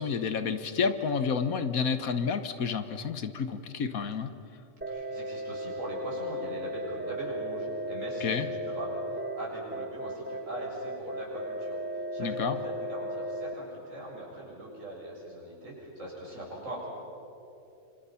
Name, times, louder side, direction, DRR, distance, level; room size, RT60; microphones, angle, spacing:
voice 1, 0.0-4.3 8.2-8.5 12.2-12.6, left 6 dB, 70° left, 10 dB, 1.5 m, -30 dB
sound 1, 4.8-13.5, right 1 dB, 10° right, 1.2 m, -36 dB
voice 2, 4.9-9.0 9.4-16.9, right 1 dB, 60° right, -4 dB, 7.7 m, -41 dB
28.0 x 26.5 x 5.8 m, 2.8 s
omnidirectional pair, 1.5 m